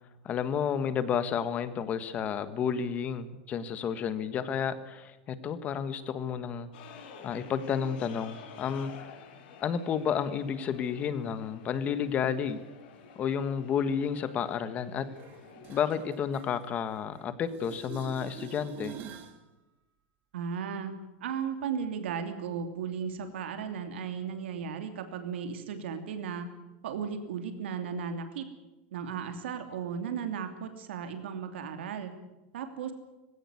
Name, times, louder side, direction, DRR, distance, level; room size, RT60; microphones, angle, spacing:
voice 1, 0.2-6.7 7.2-9.1 9.6-12.6 13.1-15.1 15.7-18.9, left 7 dB, 25° left, 12 dB, 1.5 m, -31 dB
sound 1, 6.7-16.1, left 6 dB, 65° left, 4.8 m, -50 dB
sound 2, 15.2-17.2 17.5-19.4 25.1-25.2, right 8 dB, 35° right, 2.2 m, -46 dB
voice 2, 20.3-26.5 26.8-28.4 28.9-32.1 32.5-32.9, right 7 dB, 90° right, 7 dB, 2.9 m, -35 dB
19.5 x 17.0 x 9.6 m, 1.0 s
supercardioid pair, 165°, 6 cm